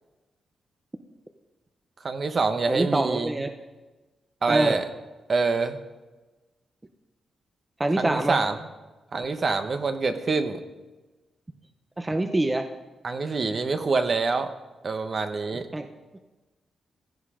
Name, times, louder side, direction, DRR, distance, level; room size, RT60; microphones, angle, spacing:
voice 1, 2.0-3.4 4.4-4.8 5.3-5.8 8.0-8.5 9.1-10.6 13.0-14.5 14.8-15.7, right 4 dB, 40° right, 8 dB, 1.1 m, -25 dB
voice 2, 2.7-3.5 4.5-4.8 7.8-8.4 12.0-12.7 15.7-15.9, right 2 dB, 15° right, 6 dB, 0.8 m, -25 dB
16.0 x 13.0 x 5.0 m, 1.2 s
wide cardioid pair, 130°, 0 cm